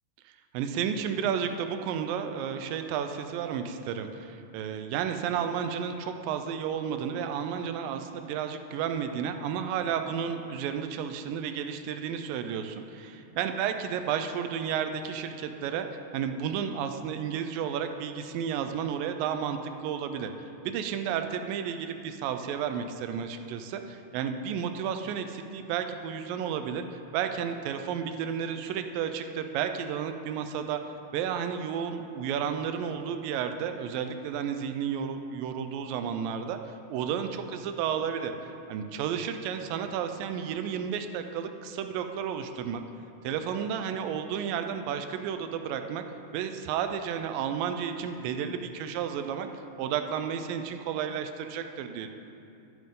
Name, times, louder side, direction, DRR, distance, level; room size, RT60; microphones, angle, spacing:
voice 1, 0.5-15.9 16.1-20.3 20.7-26.8 27.1-30.9 31.1-36.6 36.9-38.3 38.7-42.8 43.2-46.0 46.3-49.5 49.8-52.1, right 8 dB, 85° right, 7 dB, 2.3 m, -32 dB
12.0 x 10.5 x 3.8 m, 2.6 s
omnidirectional pair, 4.1 m